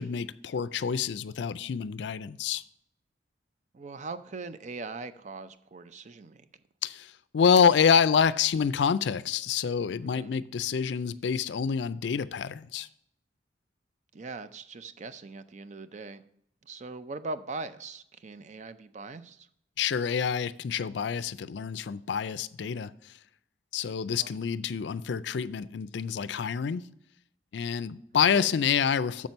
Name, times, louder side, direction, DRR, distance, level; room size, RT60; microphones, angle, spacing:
voice 1, 0.0-2.6 6.8-12.9 19.8-22.9 23.7-26.8 27.5-29.3, left 6 dB, 65° left, 0.4 m, -27 dB
voice 2, 3.7-6.5 10.0-10.3 14.1-16.2 16.6-19.5 24.1-24.3 28.1-28.5, right 3 dB, 40° right, 0.5 m, -41 dB
7.3 x 5.9 x 5.3 m
head